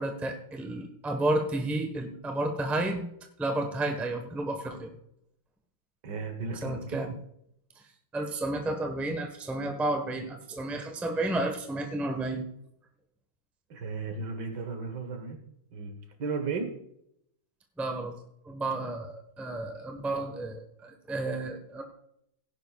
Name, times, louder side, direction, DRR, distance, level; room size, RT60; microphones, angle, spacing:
voice 1, 0.0-3.1 3.4-4.9 6.6-7.1 8.1-12.4 17.8-18.1 18.4-21.8, right 2 dB, ahead, 3 dB, 0.9 m, -31 dB
voice 2, 6.0-7.0 13.7-15.4 15.7-16.7, right 4 dB, 60° right, 6 dB, 1.9 m, -35 dB
17.5 x 10.5 x 2.4 m, 0.77 s
omnidirectional pair, 2.1 m